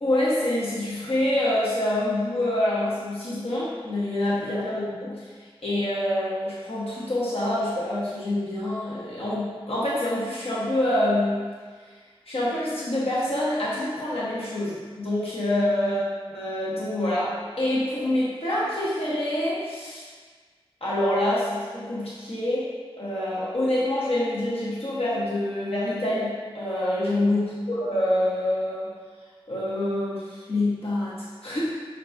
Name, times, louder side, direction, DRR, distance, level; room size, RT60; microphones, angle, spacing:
voice 1, 0.0-5.2 5.6-11.4 12.3-16.1 16.3-20.0 20.8-22.7 23.0-27.5 27.8-28.9 29.5-31.6, left 1 dB, 70° left, -8 dB, 1.0 m, -26 dB
5.2 x 4.0 x 2.3 m, 1.5 s
wide cardioid pair, 45°, 10 cm